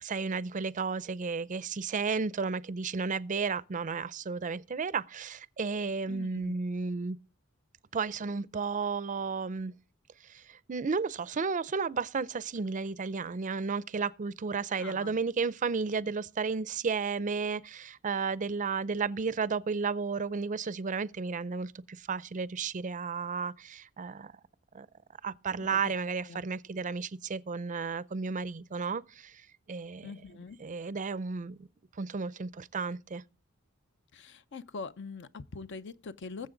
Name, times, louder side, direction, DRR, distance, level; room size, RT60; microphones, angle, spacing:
voice 1, 0.0-7.2 7.9-9.7 10.2-24.3 24.7-24.9 25.2-30.1 30.6-31.7 32.0-33.2, right 5 dB, 40° right, 0.5 m, -33 dB
voice 2, 6.1-6.6 14.7-15.2 25.6-25.9 26.2-26.4 30.0-30.6 34.1-36.5, left 4 dB, 60° left, 0.6 m, -43 dB
20.5 x 7.5 x 3.8 m
head